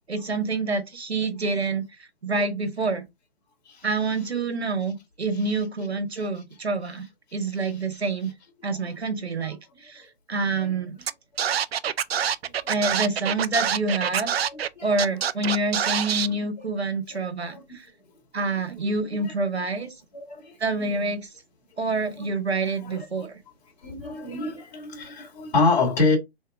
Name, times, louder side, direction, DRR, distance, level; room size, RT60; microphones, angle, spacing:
voice 1, 0.1-3.0 3.8-7.1 7.3-8.3 8.6-10.9 12.7-14.3 14.8-17.9 18.3-19.9 20.6-21.3 21.8-23.4, right 3 dB, 90° right, 1.6 m, -27 dB
Scratching (performance technique), 11.1-11.2 11.4-14.7 15.0-16.3, right 9 dB, 75° right, 0.5 m, -25 dB
voice 2, 14.4-14.9 16.6-16.7 17.1-17.2 17.5-17.6 19.2-19.3 19.8-19.9 20.1-21.0 21.9-22.3 22.6-23.3 23.8-26.2, left 3 dB, 45° left, 2.2 m, -28 dB
3.9 x 3.6 x 3.6 m
hypercardioid pair, 145°, 31 cm